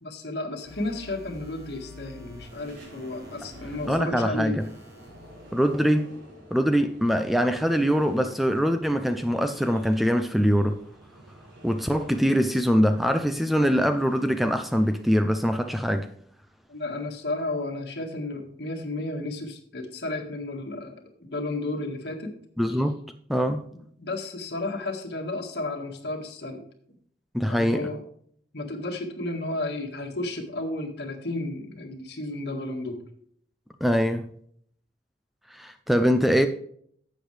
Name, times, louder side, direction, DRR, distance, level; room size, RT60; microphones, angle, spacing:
voice 1, 0.0-4.6 16.7-22.4 22.7-22.8 23.7-26.6 27.4-28.0 28.5-33.0, left 2 dB, 60° left, 1.9 m, -33 dB
sound 1, 0.6-4.0 4.6-5.9, left 3 dB, 20° right, 2.7 m, -48 dB
sound 2, 1.8-15.2, right 1 dB, 90° right, 4.7 m, -48 dB
voice 2, 3.9-4.7 5.5-6.1 6.5-10.8 11.6-16.1 22.6-23.0 23.3-23.6 27.3-27.9 33.8-34.2 35.5-36.5, equal, ahead, 0.5 m, -23 dB
11.5 x 8.0 x 3.3 m
head